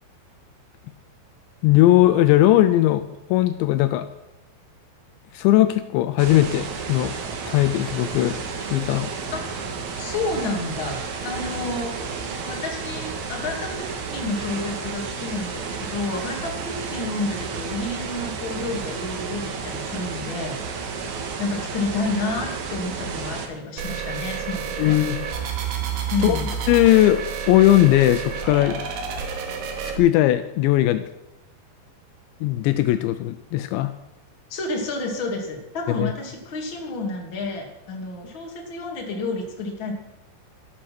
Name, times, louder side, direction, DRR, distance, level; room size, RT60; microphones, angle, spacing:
voice 1, 1.6-3.0 3.3-4.1 5.3-7.1 7.5-9.1 24.8-25.2 26.2-26.4 26.7-28.8 30.0-31.0 32.4-33.9 36.0-36.1, left 14 dB, 80° left, 10 dB, 2.8 m, -18 dB
sound 1, 6.2-23.5, right 5 dB, 60° right, 2.1 m, -32 dB
voice 2, 10.0-11.9 12.5-20.6 21.4-25.0 26.1-26.5 34.5-39.9, left 3 dB, 35° left, 0 dB, 2.5 m, -30 dB
sound 2, 23.8-30.0, right 7 dB, 85° right, 4.1 m, -30 dB
13.0 x 13.0 x 6.0 m, 0.92 s
omnidirectional pair, 5.3 m